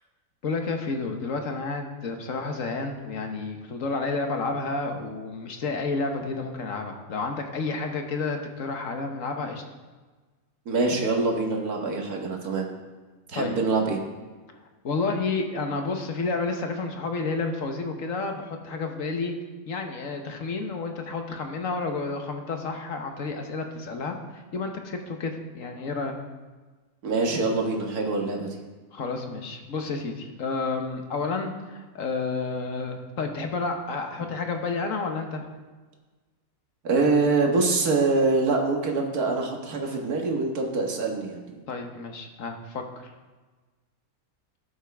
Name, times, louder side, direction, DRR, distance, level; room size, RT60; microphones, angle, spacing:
voice 1, 0.4-9.6 13.3-13.5 14.8-19.3 19.7-26.2 28.9-35.4 41.7-43.1, left 3 dB, 65° left, 4 dB, 1.4 m, -30 dB
voice 2, 10.7-12.7 13.3-14.0 27.0-28.6 36.8-41.4, right 3 dB, 85° right, 1 dB, 2.0 m, -24 dB
18.0 x 7.4 x 3.5 m, 1.3 s
omnidirectional pair, 1.5 m